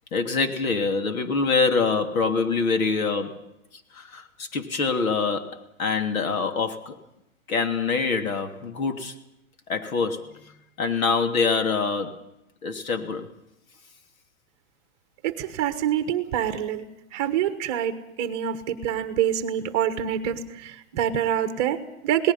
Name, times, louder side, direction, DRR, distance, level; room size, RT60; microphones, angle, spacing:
voice 1, 0.1-3.4 3.9-7.0 7.5-9.1 9.7-12.2 12.6-13.3, left 4 dB, 85° left, 6 dB, 3.0 m, -25 dB
voice 2, 15.2-16.9 17.1-22.3, right 10 dB, 20° right, 10 dB, 1.2 m, -26 dB
28.0 x 19.0 x 5.7 m, 0.87 s
hypercardioid pair, 175°, 41 cm